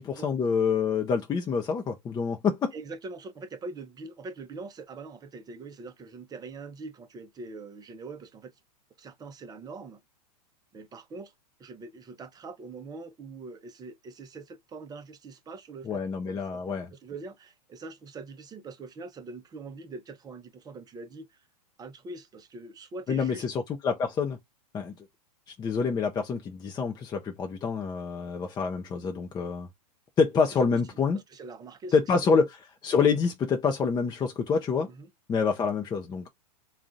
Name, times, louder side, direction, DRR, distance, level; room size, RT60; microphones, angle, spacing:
voice 1, 0.0-2.7 15.8-16.9 23.1-24.4 24.7-24.9 25.5-29.7 30.2-31.2 31.9-34.9 35.3-36.3, left 5 dB, 20° left, 0.6 m, -27 dB
voice 2, 2.7-8.5 9.0-10.0 10.7-11.3 11.6-16.6 16.9-21.4 21.8-23.5 31.1-31.9 32.2-32.3 34.9-35.1, right 3 dB, 20° right, 0.7 m, -43 dB
3.7 x 2.4 x 3.8 m
hypercardioid pair, 115°, 21 cm